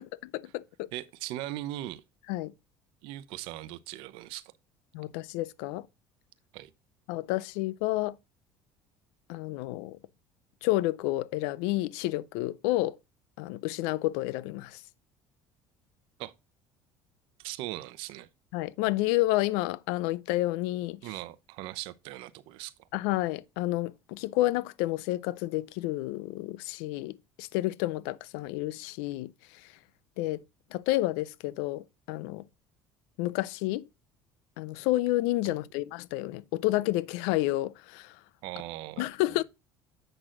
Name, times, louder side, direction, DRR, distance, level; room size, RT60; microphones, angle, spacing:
voice 1, 0.9-2.0 3.0-4.4 6.5-6.7 16.2-16.3 17.4-18.3 21.0-22.9 35.4-35.6 38.4-39.4, right 15 dB, 75° right, 0.7 m, -39 dB
voice 2, 4.9-5.9 7.1-8.2 9.3-10.0 10.6-13.0 13.4-14.8 18.5-21.0 22.9-29.3 30.2-30.4 30.7-32.4 33.2-33.9 34.6-38.1 39.0-39.4, left 17 dB, 85° left, 0.5 m, -30 dB
7.8 x 6.1 x 3.8 m
cardioid pair, 120°, 9 cm